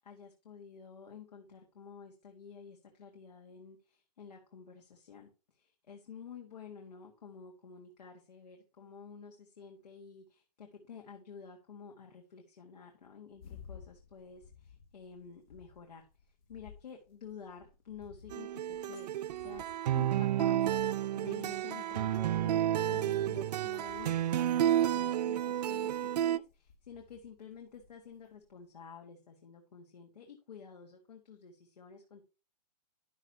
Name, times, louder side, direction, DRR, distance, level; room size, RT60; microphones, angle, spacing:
voice 1, 0.0-16.1 16.5-20.7 21.1-32.2, left 6 dB, 80° left, 1 dB, 1.8 m, -51 dB
sound 1, 13.3-28.5, left 7 dB, 55° left, 3.0 m, -58 dB
sound 2, 18.3-26.4, right 11 dB, 75° right, 0.4 m, -31 dB
11.0 x 6.4 x 2.8 m, 0.32 s
hypercardioid pair, 140°, 21 cm